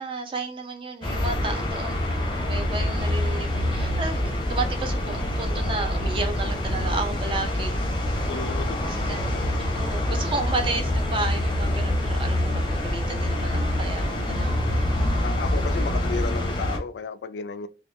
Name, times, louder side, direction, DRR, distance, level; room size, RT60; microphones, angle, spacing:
voice 1, 0.0-2.0 2.4-7.8 8.9-15.0, right 3 dB, 30° right, 0.5 m, -32 dB
sound 1, 1.0-16.8, left 1 dB, 25° left, 0.6 m, -26 dB
voice 2, 8.3-8.8 15.2-17.7, left 5 dB, 70° left, 0.3 m, -33 dB
3.1 x 2.2 x 3.5 m
head